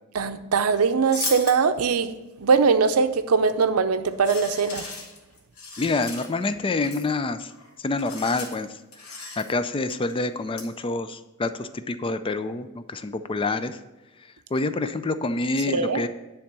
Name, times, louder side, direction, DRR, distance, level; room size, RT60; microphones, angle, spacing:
voice 1, 0.1-2.1 2.4-4.9 15.7-16.0, right 5 dB, 90° right, 10 dB, 0.6 m, -21 dB
sound 1, 1.1-1.6 3.4-3.7 4.1-6.5 6.8-7.0 7.5-7.7 8.0-8.6 8.9-9.5 9.9-10.2 10.6-10.7, left 3 dB, 90° left, 1.7 m, -36 dB
voice 2, 5.8-7.5 7.8-8.8 9.4-13.8 14.5-16.1, left 3 dB, 25° left, 11 dB, 0.4 m, -27 dB
10.0 x 3.5 x 6.7 m, 1.1 s
head